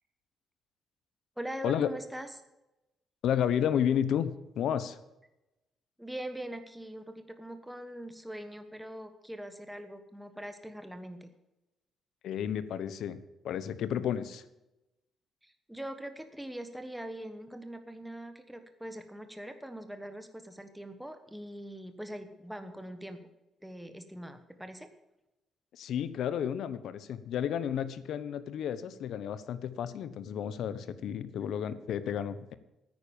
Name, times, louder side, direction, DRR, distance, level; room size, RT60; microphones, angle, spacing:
voice 1, 1.4-2.3 6.0-11.3 15.4-23.2 23.6-24.9, right 1 dB, 5° right, 8 dB, 1.2 m, -42 dB
voice 2, 3.2-5.0 12.2-13.2 13.4-14.4 25.7-32.5, left 9 dB, 70° left, 14 dB, 0.9 m, -32 dB
9.6 x 9.5 x 7.1 m, 0.96 s
cardioid pair, 155°, 0 cm